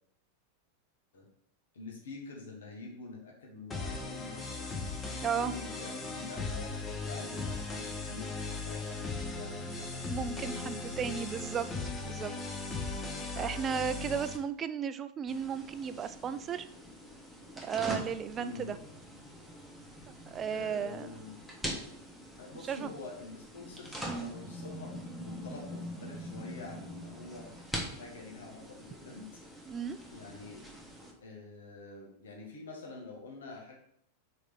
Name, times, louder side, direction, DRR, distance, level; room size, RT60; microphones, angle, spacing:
voice 1, 1.7-4.7 5.0-10.8 18.4-18.8 20.5-21.4 22.4-27.5 27.9-29.3 30.1-30.6 31.2-33.8, left 3 dB, 65° left, -1 dB, 1.5 m, -47 dB
sound 1, 3.7-14.4, left 3 dB, 15° left, 1.0 m, -38 dB
voice 2, 10.1-11.7 12.0-12.3 13.4-16.7 17.6-18.8 20.3-21.1 22.7-22.9 24.1-24.3 29.7-30.0, right 7 dB, 25° right, 12 dB, 0.4 m, -34 dB
sound 2, 15.3-31.1, equal, ahead, 1.3 m, -43 dB
4.9 x 4.1 x 5.3 m, 0.69 s
figure-of-eight pair, 90°, 0 cm